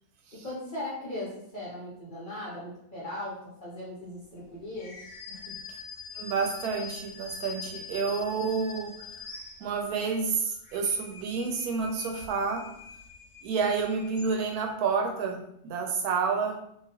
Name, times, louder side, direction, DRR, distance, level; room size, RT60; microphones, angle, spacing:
voice 1, 0.4-5.5, left 1 dB, 40° left, -7 dB, 0.8 m, -39 dB
sound 1, 4.7-10.0 10.5-14.7, left 5 dB, 80° left, 1.2 m, -44 dB
voice 2, 6.2-9.0 9.6-12.7 13.4-16.6, right 5 dB, 85° right, 2 dB, 1.1 m, -29 dB
2.9 x 2.5 x 2.8 m, 0.73 s
omnidirectional pair, 1.6 m